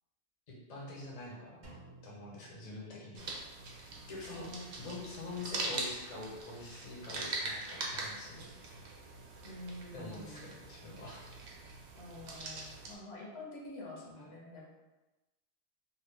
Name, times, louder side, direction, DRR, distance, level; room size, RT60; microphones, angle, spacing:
voice 1, 0.5-1.7 2.0-3.3 3.9-4.5 4.8-8.5 8.8-8.9 9.9-11.2, left 2 dB, 40° left, -4 dB, 0.7 m, -45 dB
Drum, 1.6-3.5, right 2 dB, 45° right, 0.9 m, -56 dB
sound 1, 3.1-12.9, right 2 dB, 75° right, 0.9 m, -42 dB
voice 2, 4.3-4.7 9.4-10.5 12.0-14.6, left 2 dB, 70° left, -4 dB, 1.0 m, -47 dB
2.8 x 2.2 x 3.3 m, 1.1 s
omnidirectional pair, 1.1 m